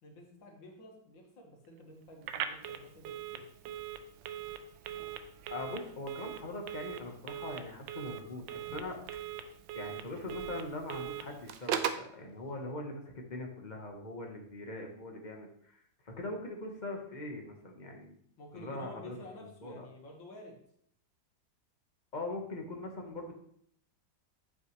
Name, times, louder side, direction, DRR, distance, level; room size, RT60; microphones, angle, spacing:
voice 1, 0.0-3.4 18.4-20.6, left 1 dB, 75° left, 0 dB, 2.4 m, -51 dB
Telephone, 2.2-12.1, right 9 dB, 80° right, 1.4 m, -40 dB
voice 2, 5.5-8.4 8.7-9.2 9.7-18.2 18.5-19.1 19.4-19.9 22.1-23.3, left 2 dB, 25° left, 1 dB, 1.2 m, -41 dB
8.3 x 8.2 x 3.2 m, 0.65 s
omnidirectional pair, 2.1 m